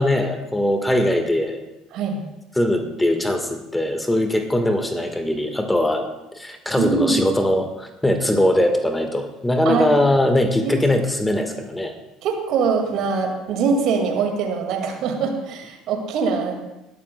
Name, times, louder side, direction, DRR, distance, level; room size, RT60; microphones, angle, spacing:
voice 1, 0.0-1.6 2.5-6.0 6.3-11.9, left 1 dB, 10° left, 6 dB, 1.4 m, -21 dB
voice 2, 1.9-2.2 6.8-7.2 9.7-9.9 10.6-10.8 11.3-11.5 12.2-16.6, right 5 dB, 55° right, 3 dB, 1.9 m, -23 dB
20.0 x 12.0 x 2.2 m, 0.98 s
hypercardioid pair, 60°, 0 cm